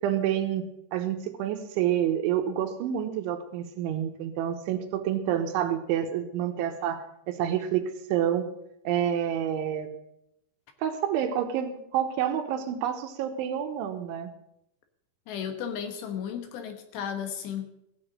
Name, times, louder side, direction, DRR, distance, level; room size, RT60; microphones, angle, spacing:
voice 1, 0.0-7.0 7.3-8.5 8.8-9.9 10.8-14.3, right 10 dB, 80° right, 6 dB, 3.3 m, -28 dB
voice 2, 15.3-17.7, left 8 dB, 70° left, 7 dB, 3.1 m, -34 dB
16.0 x 7.0 x 8.6 m, 0.79 s
omnidirectional pair, 5.7 m